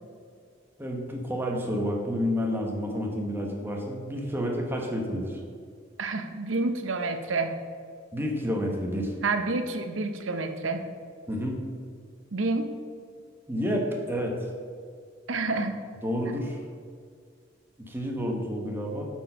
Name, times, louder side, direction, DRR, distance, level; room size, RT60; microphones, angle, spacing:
voice 1, 0.8-5.4 8.1-9.1 11.3-11.6 13.5-14.3 16.0-16.6 17.8-19.1, equal, 10° right, 0 dB, 1.0 m, -29 dB
voice 2, 6.0-7.5 9.2-10.9 12.3-12.7 15.3-15.8, right 3 dB, 90° right, 8 dB, 0.7 m, -28 dB
8.2 x 4.5 x 5.5 m, 2.1 s
head